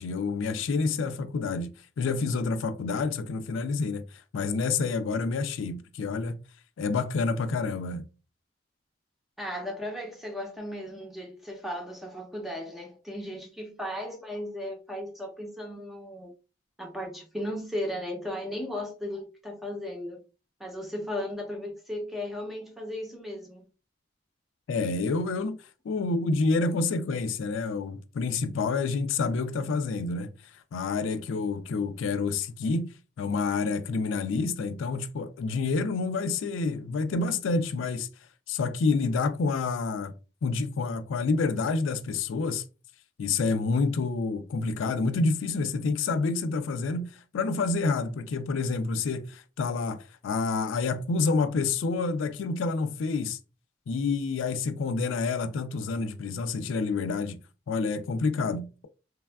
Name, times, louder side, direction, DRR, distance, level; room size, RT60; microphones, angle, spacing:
voice 1, 0.0-4.0 4.3-6.3 6.8-8.1 24.7-30.3 30.7-38.1 38.5-40.1 40.4-42.6 43.2-53.4 53.9-57.4 57.7-58.9, left 4 dB, 85° left, 0.3 m, -28 dB
voice 2, 9.4-16.3 16.8-20.2 20.6-23.7, left 1 dB, ahead, 0.5 m, -36 dB
3.3 x 2.2 x 2.3 m
head